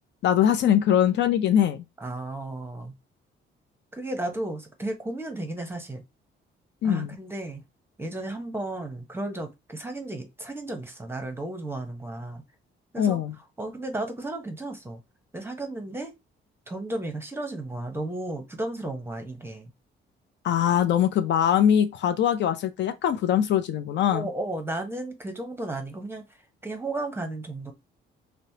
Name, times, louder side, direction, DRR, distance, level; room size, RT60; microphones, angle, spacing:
voice 1, 0.2-1.8 6.8-7.2 13.0-13.3 20.4-24.3, left 9 dB, 65° left, 0.4 m, -22 dB
voice 2, 2.0-2.9 3.9-6.0 6.8-7.6 8.0-12.4 12.9-13.2 13.6-15.0 15.3-16.1 16.7-19.7 24.1-26.2 26.6-27.7, right 2 dB, 10° right, 0.8 m, -34 dB
3.0 x 2.0 x 2.7 m
cardioid pair, 90°, 20 cm